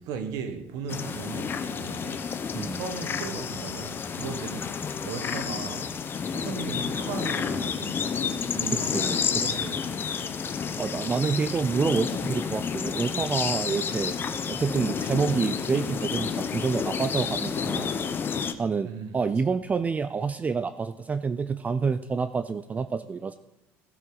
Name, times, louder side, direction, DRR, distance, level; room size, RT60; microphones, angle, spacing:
voice 1, 0.0-2.3 2.7-4.8 5.0-5.9 6.3-9.1 9.4-9.8 18.8-19.2, right 5 dB, 70° right, 1.4 m, -37 dB
sound 1, 0.9-18.5, left 6 dB, 35° left, 0.8 m, -30 dB
voice 2, 8.8-9.8 10.8-14.1 14.5-17.9 18.6-18.9 19.1-23.4, right 5 dB, 20° right, 0.4 m, -28 dB
16.0 x 7.5 x 4.0 m
supercardioid pair, 105°, 7 cm